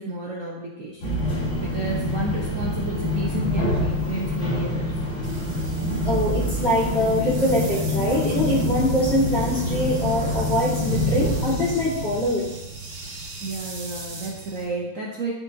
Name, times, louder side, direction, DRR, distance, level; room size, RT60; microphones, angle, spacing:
voice 1, 0.0-5.0 13.4-15.3, right 2 dB, 55° right, -3 dB, 1.0 m, -32 dB
sound 1, 1.0-14.6, left 1 dB, 75° left, 2.7 m, -27 dB
sound 2, 5.2-14.6, right 2 dB, 85° right, 2.9 m, -41 dB
voice 2, 6.0-12.5, left 1 dB, 30° left, -7 dB, 2.2 m, -23 dB
12.5 x 4.4 x 2.8 m, 0.98 s
omnidirectional pair, 2.2 m